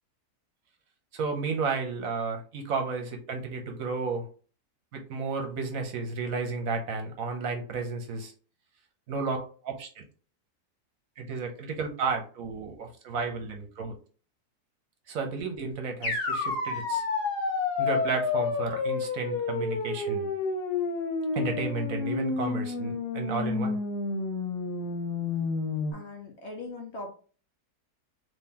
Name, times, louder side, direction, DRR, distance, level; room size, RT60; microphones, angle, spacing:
voice 1, 1.1-4.3 4.9-8.3 9.1-9.4 9.6-10.0 11.2-14.0 15.1-17.0 17.8-20.3 21.3-23.8, right 4 dB, 65° right, 4 dB, 1.1 m, -32 dB
sound 1, 16.0-25.9, left 4 dB, 75° left, 1.5 m, -30 dB
voice 2, 25.9-27.1, left 2 dB, 55° left, 1 dB, 0.9 m, -40 dB
3.7 x 2.9 x 2.8 m, 0.39 s
omnidirectional pair, 1.7 m